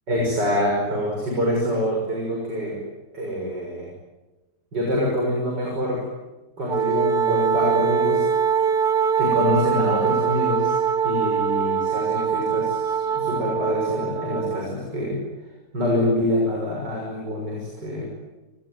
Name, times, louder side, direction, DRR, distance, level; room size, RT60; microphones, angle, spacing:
voice 1, 0.1-2.8 3.1-3.9 4.7-6.0 6.6-8.3 9.2-10.8 11.0-15.2 15.7-18.1, left 1 dB, 80° right, -1 dB, 7.0 m, -25 dB
Wind instrument woodwind instrument, 6.7-14.7, right 7 dB, 35° right, 1.3 m, -23 dB
29.5 x 20.0 x 9.6 m, 1.1 s
omnidirectional pair, 1.8 m